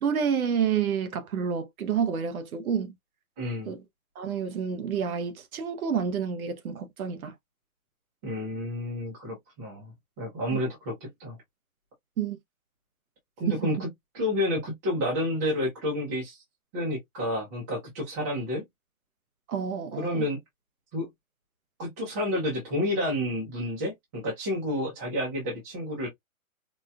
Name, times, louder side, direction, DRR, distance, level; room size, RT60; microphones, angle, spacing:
voice 1, 0.0-3.0 3.7-3.8 4.2-7.3 10.5-10.6 12.2-12.4 13.5-13.7 19.5-20.2, right 7 dB, 90° right, 0.8 m, -29 dB
voice 2, 3.4-3.7 8.2-9.9 10.2-11.4 13.4-13.9 14.1-16.4 16.7-18.6 20.0-20.4 20.9-21.1 21.8-26.1, left 1 dB, 10° right, 0.6 m, -30 dB
4.2 x 2.2 x 2.2 m
hypercardioid pair, 160°, 42 cm